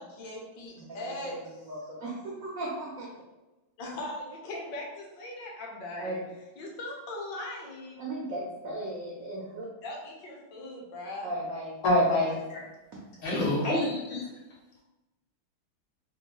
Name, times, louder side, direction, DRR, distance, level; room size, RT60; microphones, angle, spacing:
voice 1, 0.0-1.3 3.8-6.2 6.6-8.0 9.8-11.3 13.2-13.4, left 1 dB, 65° left, -1 dB, 1.3 m, -39 dB
voice 2, 0.8-3.1 6.0-6.2 8.0-9.7 11.2-11.8 12.9-13.0, right 1 dB, 80° right, -4 dB, 0.7 m, -37 dB
voice 3, 11.8-12.6 13.2-14.3, left 1 dB, 85° left, -8 dB, 2.3 m, -26 dB
4.4 x 2.2 x 2.9 m, 1.1 s
omnidirectional pair, 2.3 m